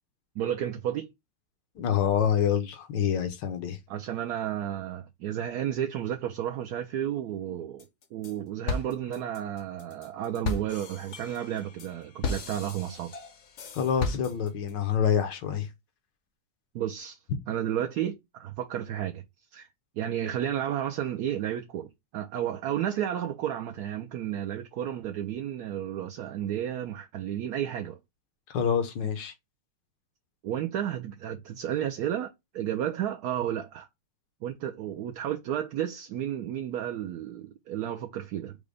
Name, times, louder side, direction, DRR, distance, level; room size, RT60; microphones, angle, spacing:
voice 1, 0.4-1.1 3.9-13.2 16.7-17.2 17.5-19.2 19.5-19.7 20.0-28.0 30.4-33.9 34.4-38.6, right 10 dB, 70° right, 1.0 m, -32 dB
voice 2, 1.8-3.8 13.7-15.7 28.5-29.3, left 8 dB, 75° left, 1.5 m, -26 dB
sound 1, 7.8-8.3 8.7-14.7, left 3 dB, 50° left, 0.9 m, -35 dB
5.0 x 2.2 x 4.8 m
omnidirectional pair, 2.0 m